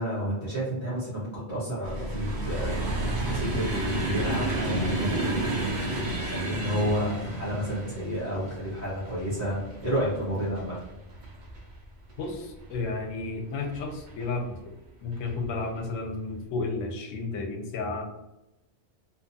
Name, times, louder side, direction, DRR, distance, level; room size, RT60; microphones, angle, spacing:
voice 1, 0.0-10.8, equal, 15° left, -10 dB, 0.7 m, -31 dB
sound 1, 1.8-12.9 13.6-14.3 15.1-15.3 15.6-15.8, right 1 dB, 50° right, 0.6 m, -32 dB
voice 2, 12.2-14.6 15.0-18.1, left 3 dB, 85° left, 3 dB, 0.9 m, -32 dB
2.8 x 2.2 x 2.6 m, 0.94 s
omnidirectional pair, 1.3 m